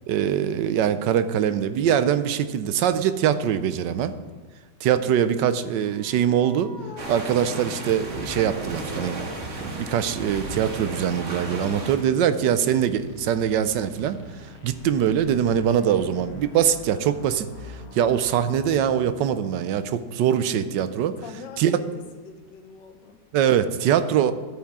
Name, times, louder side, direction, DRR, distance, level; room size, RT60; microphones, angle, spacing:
voice 1, 0.1-4.1 4.8-6.7 7.1-9.2 9.6-21.2 21.6-21.8 23.3-24.3, right 9 dB, 85° right, 12 dB, 1.3 m, -23 dB
voice 2, 4.8-5.2 21.2-21.9 22.1-23.2 23.8-24.3, left 5 dB, 85° left, 6 dB, 1.6 m, -44 dB
sound 1, 5.7-19.6, left 3 dB, 60° left, 1.6 m, -44 dB
sound 2, 7.0-12.0, right 2 dB, 45° right, 1.6 m, -34 dB
12.5 x 8.8 x 3.6 m, 1.3 s
omnidirectional pair, 1.9 m